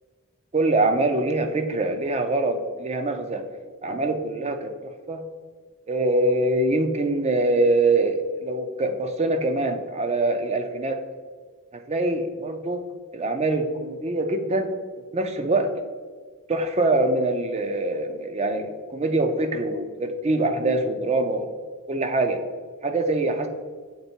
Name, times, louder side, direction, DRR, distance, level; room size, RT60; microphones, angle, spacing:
voice 1, 0.5-3.4 3.8-4.7 5.1-5.2 5.9-11.0 11.7-12.8 13.1-14.7 15.1-15.7 16.5-21.5 21.9-22.4 22.8-23.5, right 2 dB, 30° right, 7 dB, 0.5 m, -24 dB
6.8 x 3.7 x 4.4 m, 1.5 s
head